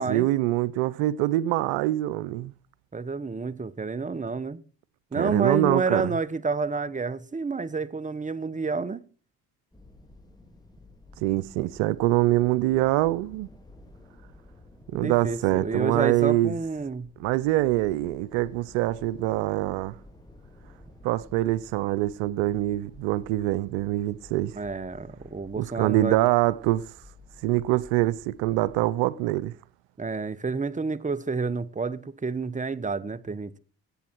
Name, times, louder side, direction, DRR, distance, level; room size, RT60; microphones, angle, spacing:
voice 1, 0.0-2.5 5.1-6.0 11.2-13.5 14.9-16.6 17.2-20.0 21.0-24.6 25.6-26.9 27.4-29.5, right 16 dB, 80° right, 0.6 m, -24 dB
voice 2, 2.9-4.6 5.1-9.0 14.9-17.1 24.5-26.2 30.0-33.6, right 4 dB, 15° right, 0.9 m, -29 dB
sound 1, 9.7-28.9, left 2 dB, 10° left, 3.3 m, -52 dB
14.0 x 8.5 x 4.5 m
hypercardioid pair, 55°, 43 cm